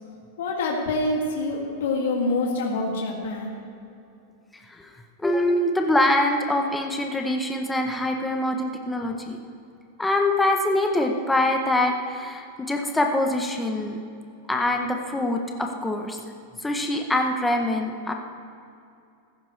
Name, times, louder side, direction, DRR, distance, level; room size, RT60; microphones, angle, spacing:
voice 1, 0.4-3.5, left 2 dB, 75° left, -1 dB, 2.2 m, -26 dB
voice 2, 5.2-9.4 10.0-14.0 14.5-16.2 16.6-18.1, left 1 dB, 5° left, 2 dB, 0.8 m, -24 dB
15.5 x 14.5 x 3.2 m, 2.5 s
supercardioid pair, 170°, 0 cm